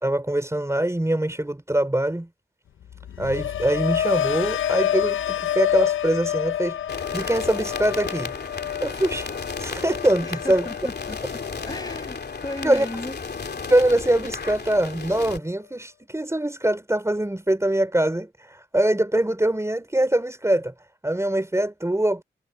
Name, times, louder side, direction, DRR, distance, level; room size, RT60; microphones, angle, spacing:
voice 1, 0.0-2.3 3.2-6.8 7.1-8.3 8.8-9.3 9.6-10.7 12.6-12.9 13.7-20.7 21.0-22.2, right 1 dB, 15° right, 3.6 m, -23 dB
sound 1, 2.8-12.9 13.3-13.7, left 11 dB, 85° left, 0.5 m, -28 dB
sound 2, 6.9-15.4, left 4 dB, 55° left, 2.9 m, -34 dB
voice 2, 10.2-12.2 12.4-13.2, left 1 dB, 20° left, 6.0 m, -35 dB
cardioid pair, 60°, 20 cm